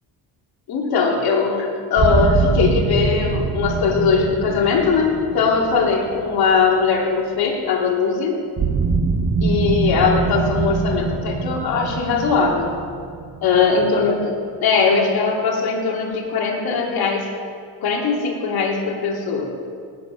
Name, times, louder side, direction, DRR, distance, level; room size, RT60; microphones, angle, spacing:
voice 1, 0.7-8.4 9.4-12.7 13.4-14.3 14.6-17.3 17.8-19.5, left 5 dB, 60° left, -1 dB, 3.1 m, -20 dB
sound 1, 2.0-6.9 8.6-14.2, right 4 dB, 35° right, 1.3 m, -23 dB
18.5 x 8.2 x 5.8 m, 2.1 s
cardioid pair, 100°, 42 cm